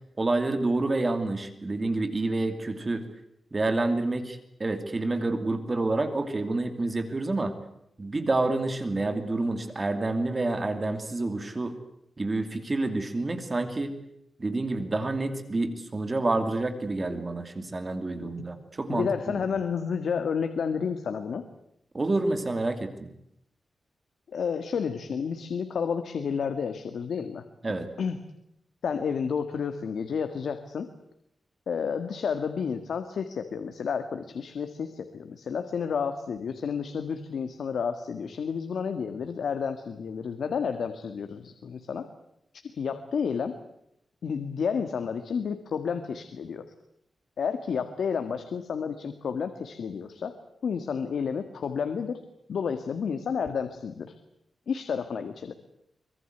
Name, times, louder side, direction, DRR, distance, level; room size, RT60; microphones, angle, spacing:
voice 1, 0.2-3.0 3.5-7.5 8.0-11.8 12.2-13.9 14.4-19.1 21.9-23.1 27.6-27.9, right 2 dB, 25° right, 8 dB, 2.7 m, -28 dB
voice 2, 18.9-21.4 24.3-27.4 28.0-28.2 28.8-30.9 31.7-42.1 42.5-43.6 44.2-46.7 47.4-50.4 50.6-52.2 52.5-54.2 54.7-55.5, left 6 dB, 80° left, 8 dB, 1.8 m, -31 dB
25.0 x 22.0 x 8.1 m, 0.77 s
wide cardioid pair, 150°, 0 cm